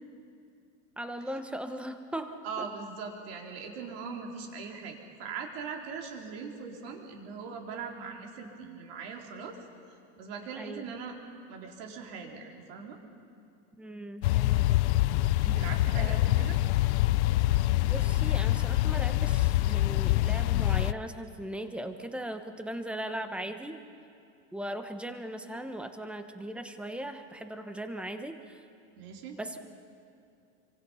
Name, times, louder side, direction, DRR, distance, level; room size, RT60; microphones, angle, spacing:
voice 1, 1.0-2.7 10.6-10.9 13.8-14.8 15.9-16.2 17.8-23.8 24.5-28.6 29.4-29.6, right 1 dB, 5° right, 7 dB, 1.0 m, -38 dB
voice 2, 2.4-9.6 10.2-11.2 11.5-13.0 15.4-16.6 29.0-29.4, right 5 dB, 60° right, 2 dB, 3.9 m, -40 dB
sound 1, 14.2-20.9, left 16 dB, 80° left, 0.6 m, -25 dB
28.0 x 24.5 x 5.6 m, 2.6 s
supercardioid pair, 155°, 34 cm